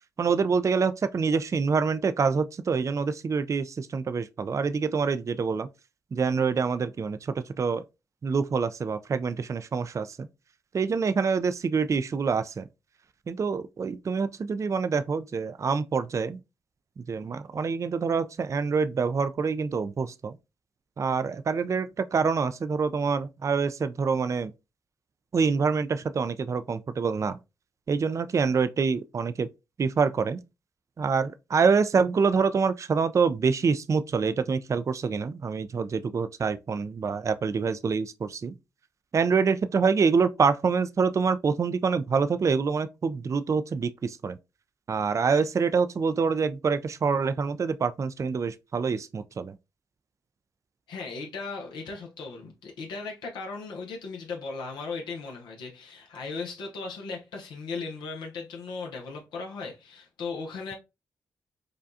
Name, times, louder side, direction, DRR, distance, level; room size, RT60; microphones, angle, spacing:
voice 1, 0.2-5.7 6.1-7.8 8.2-10.3 10.7-12.7 13.3-16.4 17.1-20.3 21.0-24.5 25.3-27.4 27.9-29.5 29.8-30.4 31.0-38.6 39.1-44.4 44.9-49.5, right 5 dB, 45° right, 0.4 m, -26 dB
voice 2, 50.9-60.7, left 4 dB, 85° left, 0.8 m, -37 dB
4.9 x 2.3 x 2.6 m
supercardioid pair, 45°, 8 cm